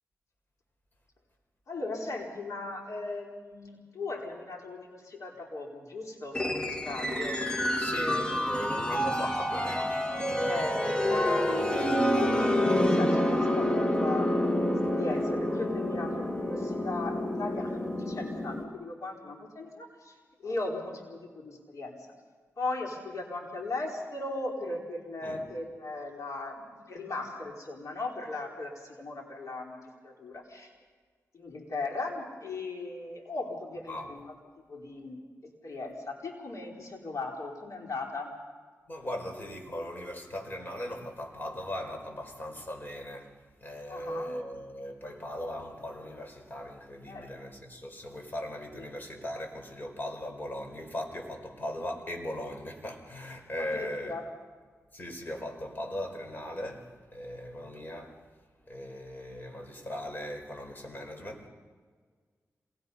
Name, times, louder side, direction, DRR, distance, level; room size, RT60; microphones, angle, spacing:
voice 1, 1.7-7.6 7.9-8.6 10.4-14.3 14.9-22.1 22.6-30.7 31.3-34.3 34.7-35.2 35.6-38.3 43.9-44.4 47.1-47.3 48.7-48.9 53.6-54.3, left 2 dB, 70° left, 0 dB, 4.2 m, -37 dB
sound 1, 6.3-18.6, left 1 dB, 15° left, 2.0 m, -28 dB
voice 2, 7.7-10.1 25.2-25.4 33.9-34.1 38.9-43.3 43.6-54.2 54.9-58.2 58.7-61.5, left 1 dB, 35° left, 3 dB, 4.9 m, -38 dB
27.0 x 19.5 x 5.6 m, 1.5 s
cardioid pair, 75°, 6 cm